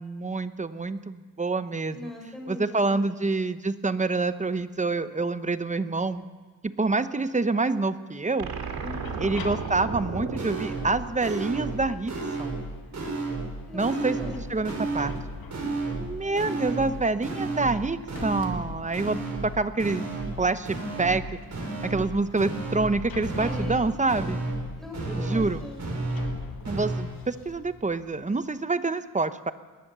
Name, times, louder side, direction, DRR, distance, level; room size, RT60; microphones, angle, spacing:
voice 1, 0.0-2.1 2.5-6.2 6.6-8.5 9.2-12.1 12.4-12.6 13.7-15.1 16.0-19.2 19.4-20.1 20.4-21.2 21.8-24.4 25.2-25.6 26.7-29.5, right 3 dB, 20° right, 12 dB, 0.8 m, -27 dB
voice 2, 1.9-3.2 8.8-9.2 13.7-14.7 16.2-16.7 23.4-24.4 24.8-25.8, left 2 dB, ahead, 0 dB, 4.9 m, -41 dB
sound 1, 8.4-11.7, right 5 dB, 85° right, 2.4 m, -35 dB
sound 2, 8.6-28.4, left 5 dB, 80° left, 2.0 m, -46 dB
sound 3, 10.4-10.9 11.2-11.8 12.1-12.7 12.9-13.5 13.8-14.4 14.7-15.2 15.5-16.1 16.4-16.9 17.2-17.8 18.1-18.7 18.9-19.5 19.8-20.4 20.7-21.2 21.5-22.1 22.4-22.9 23.2-23.8 24.1-24.7 24.9-25.5 25.8-26.4 26.6-27.0, right 3 dB, 50° right, 6.1 m, -31 dB
20.0 x 19.5 x 6.8 m, 1.4 s
cardioid pair, 115°, 36 cm